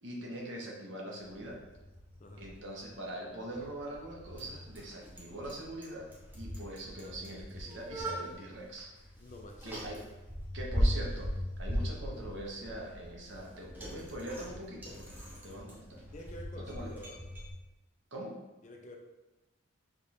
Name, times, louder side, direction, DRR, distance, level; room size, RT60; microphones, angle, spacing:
voice 1, 0.0-1.6 2.4-6.1 6.3-8.9 9.6-10.0 10.5-11.3 11.6-16.0 16.5-16.9 18.1-18.3, right 1 dB, 55° right, -2 dB, 0.9 m, -42 dB
Bicycle, 1.2-17.5, equal, 10° right, 0.7 m, -39 dB
voice 2, 9.2-9.7 16.1-17.2 18.6-19.0, left 1 dB, 35° left, 3 dB, 0.4 m, -48 dB
4.9 x 2.4 x 4.2 m, 1.0 s
head